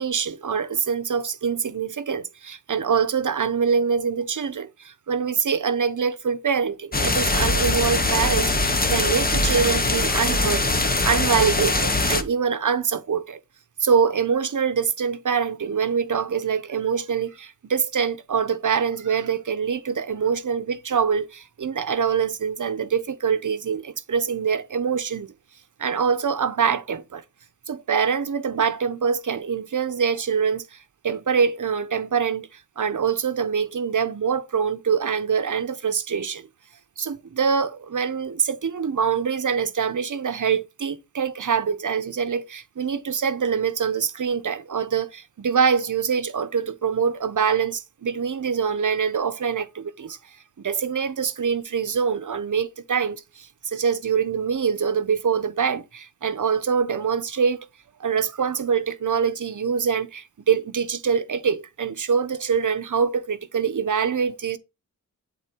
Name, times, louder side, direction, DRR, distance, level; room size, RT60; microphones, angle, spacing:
voice 1, 0.0-13.4 13.8-25.3 25.8-27.2 27.7-30.8 31.0-36.5 37.0-50.2 50.6-57.7 58.0-64.6, right 6 dB, 60° right, 1.0 m, -24 dB
sound 1, 6.9-12.2, left 2 dB, 25° left, 1.2 m, -22 dB
12.0 x 4.0 x 4.5 m
wide cardioid pair, 130°, 35 cm